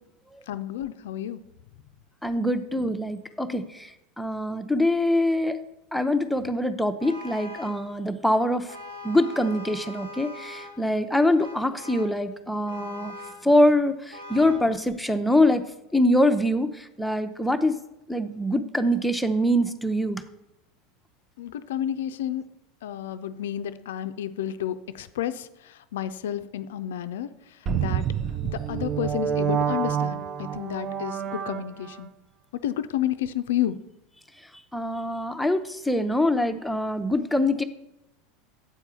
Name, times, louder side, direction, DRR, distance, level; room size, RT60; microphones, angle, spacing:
voice 1, 0.5-1.4 21.4-22.4 22.8-28.1 28.4-32.1 32.6-33.8, left 11 dB, 70° left, 12 dB, 0.4 m, -31 dB
voice 2, 2.2-3.9 4.2-5.6 5.9-8.7 9.0-13.1 13.4-15.6 15.9-17.7 18.1-20.2 34.7-37.6, left 1 dB, ahead, 8 dB, 0.6 m, -24 dB
Vehicle horn car horn honking, 7.0-7.9 8.7-10.9 11.4-12.2 12.7-13.5 14.1-14.7, left 1 dB, 80° right, 1.0 m, -41 dB
sound 1, 27.7-32.1, right 8 dB, 40° right, 0.5 m, -28 dB
8.2 x 4.6 x 6.9 m, 0.89 s
figure-of-eight pair, 80°, 0 cm